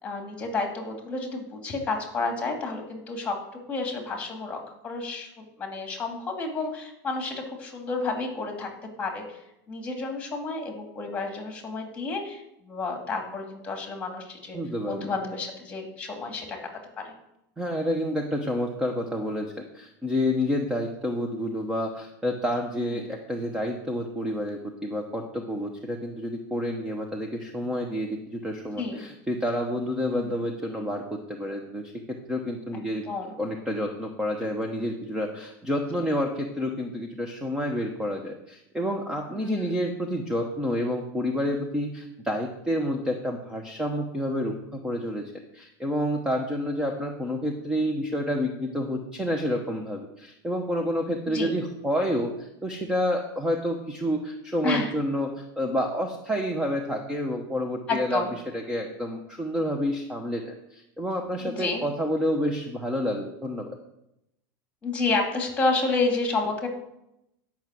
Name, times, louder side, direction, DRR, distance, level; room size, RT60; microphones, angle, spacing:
voice 1, 0.0-3.3 3.7-8.7 9.0-9.4 9.7-14.6 14.9-16.6 17.0-17.1 22.8-22.9 28.8-29.1 30.1-30.3 33.1-33.3 39.4-39.7 51.3-51.5 54.6-54.9 57.9-58.3 61.4-61.8 64.8-66.7, left 3 dB, 15° left, 2 dB, 2.5 m, -30 dB
voice 2, 14.5-15.1 17.6-31.9 32.3-33.1 33.4-58.2 58.5-63.7, equal, 5° right, 3 dB, 0.9 m, -29 dB
10.5 x 5.9 x 7.7 m, 0.84 s
supercardioid pair, 150°, 10 cm